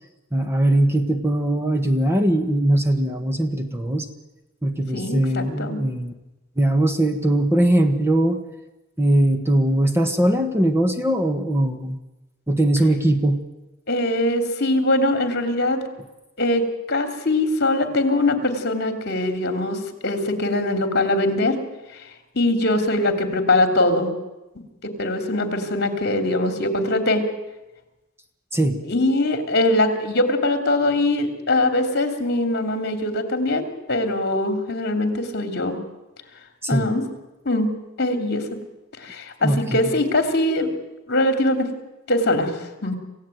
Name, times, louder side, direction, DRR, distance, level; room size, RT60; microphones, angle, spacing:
voice 1, 0.3-4.1 4.6-6.1 6.6-8.4 9.0-12.0 12.5-13.4 28.5-28.8 36.6-36.9 39.4-39.9, right 1 dB, 10° right, 7 dB, 1.5 m, -20 dB
voice 2, 4.9-5.8 13.9-15.8 16.4-21.6 22.3-24.1 24.8-27.2 28.8-35.8 36.7-37.0 37.4-37.7 38.0-38.4 39.0-40.7 41.1-41.7 42.1-42.5 42.8-43.0, left 2 dB, 50° left, 6 dB, 3.2 m, -22 dB
27.5 x 16.0 x 9.3 m, 1.0 s
head